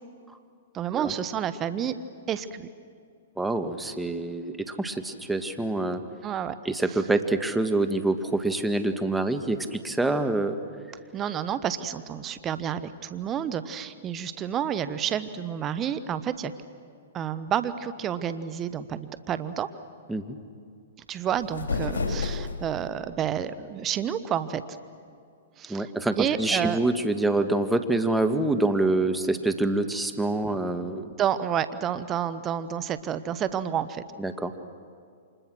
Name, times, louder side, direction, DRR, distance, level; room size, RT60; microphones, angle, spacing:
voice 1, 0.7-1.9 2.3-2.7 6.2-6.6 11.1-16.5 17.1-19.7 21.1-24.6 25.6-25.9 26.2-26.8 31.1-34.0, right 9 dB, 25° right, 14 dB, 1.2 m, -30 dB
voice 2, 3.4-6.0 6.6-10.6 20.1-20.4 25.7-31.1 34.2-34.5, right 2 dB, 5° right, 7 dB, 1.6 m, -26 dB
sound 1, 21.3-22.9, left 4 dB, 80° left, 3.4 m, -30 dB
29.5 x 26.0 x 6.3 m, 2.3 s
hypercardioid pair, 120°, 0 cm